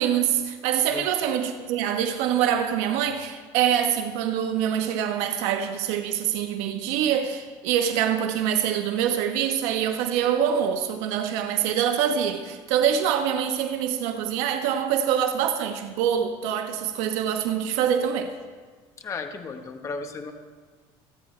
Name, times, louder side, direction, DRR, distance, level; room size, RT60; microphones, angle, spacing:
voice 1, 0.0-18.3, right 9 dB, 80° right, 1.1 m, -25 dB
voice 2, 19.0-20.3, left 4 dB, 25° left, 1.2 m, -34 dB
27.5 x 9.6 x 3.3 m
cardioid pair, 145°, 11 cm